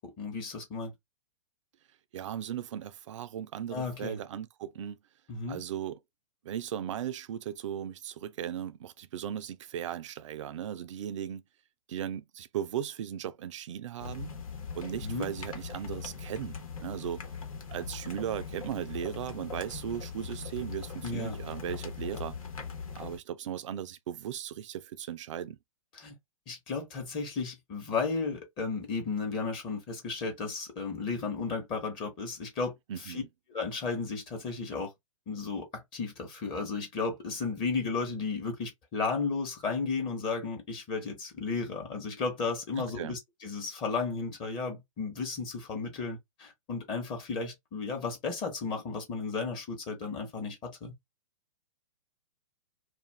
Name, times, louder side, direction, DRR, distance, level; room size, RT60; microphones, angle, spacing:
voice 1, 0.2-0.9 3.7-4.2 5.3-5.6 15.0-15.3 21.0-21.4 25.9-26.1 26.5-33.2 33.5-34.9 35.3-50.9, left 4 dB, 25° left, 1.0 m, -34 dB
voice 2, 2.1-5.0 5.5-6.0 6.4-11.4 11.9-14.3 14.7-17.2 17.7-22.4 22.9-25.6 32.9-33.3 42.8-43.2, right 10 dB, 60° right, 0.5 m, -37 dB
sound 1, 14.0-23.2, left 5 dB, 75° left, 1.1 m, -41 dB
2.5 x 2.3 x 3.2 m
hypercardioid pair, 130°, 18 cm